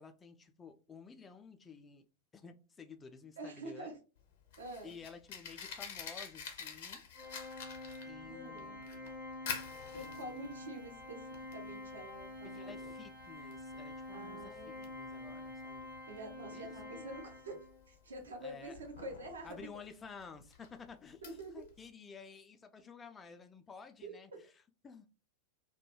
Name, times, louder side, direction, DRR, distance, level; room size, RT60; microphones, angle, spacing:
voice 1, 0.0-2.1 2.3-3.9 4.8-7.1 8.0-9.2 9.9-10.7 12.4-15.9 16.5-17.1 18.4-18.8 19.4-24.5 24.8-25.1, left 5 dB, 20° left, 0.3 m, -53 dB
voice 2, 3.4-3.9 4.6-5.0 8.3-8.8 9.9-12.9 14.1-14.9 16.1-17.6 17.9-19.5 21.2-21.5 24.0-24.1, right 1 dB, 70° right, 0.7 m, -47 dB
Fire, 4.2-21.9, left 6 dB, 55° left, 0.7 m, -49 dB
Organ, 7.1-17.9, left 2 dB, 45° right, 1.0 m, -47 dB
2.2 x 2.2 x 3.0 m
figure-of-eight pair, 90°, 0 cm